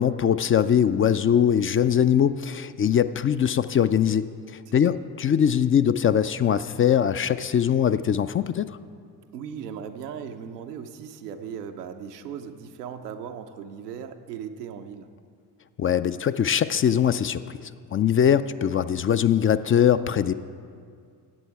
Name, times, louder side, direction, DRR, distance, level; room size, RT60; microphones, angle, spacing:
voice 1, 0.0-4.3 4.7-8.7 15.8-17.4 17.9-20.3, left 9 dB, 30° left, 13 dB, 0.4 m, -21 dB
voice 2, 9.3-15.1, right 7 dB, 90° right, 6 dB, 0.7 m, -38 dB
13.5 x 8.5 x 4.7 m, 2.2 s
hypercardioid pair, 45°, 46 cm